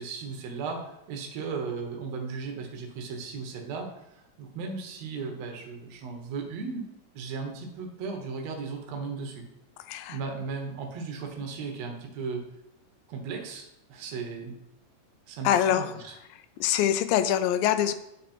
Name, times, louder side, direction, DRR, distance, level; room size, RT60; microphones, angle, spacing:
voice 1, 0.0-6.8 7.1-9.4 10.1-12.4 13.1-14.5 15.3-15.5 15.8-16.1, right 5 dB, 60° right, 3 dB, 2.0 m, -36 dB
voice 2, 9.9-10.2 15.4-15.9 16.6-17.9, left 10 dB, 90° left, 11 dB, 2.3 m, -24 dB
8.7 x 4.2 x 4.3 m, 0.81 s
omnidirectional pair, 3.9 m